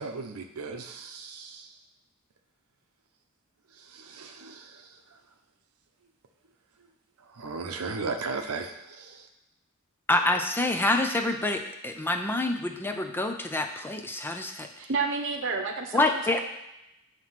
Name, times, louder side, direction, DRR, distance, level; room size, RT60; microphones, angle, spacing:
voice 1, 0.0-1.7 3.9-4.8 7.3-9.3, right 4 dB, 80° right, 5 dB, 0.7 m, -36 dB
voice 2, 10.1-14.7 15.9-16.4, left 2 dB, 10° left, 5 dB, 0.4 m, -27 dB
voice 3, 14.8-16.4, right 4 dB, 60° right, 4 dB, 0.9 m, -30 dB
7.6 x 3.0 x 5.7 m, 0.89 s
head